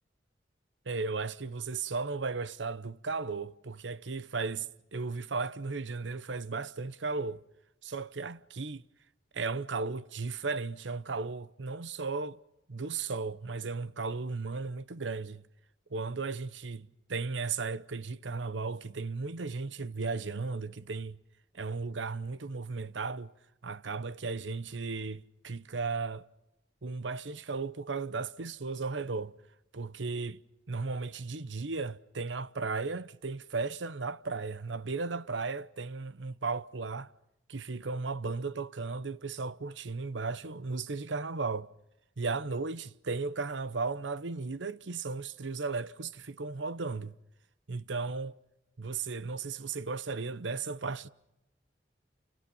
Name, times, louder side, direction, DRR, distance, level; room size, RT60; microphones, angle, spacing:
voice 1, 0.9-7.4 7.8-8.8 9.3-12.4 12.7-15.4 15.9-21.2 21.5-23.3 23.6-26.3 26.8-29.3 29.7-30.4 30.7-37.1 37.5-41.7 42.2-47.2 47.7-48.4 48.8-51.1, right 4 dB, 90° right, 0.9 m, -35 dB
29.5 x 29.5 x 5.5 m
head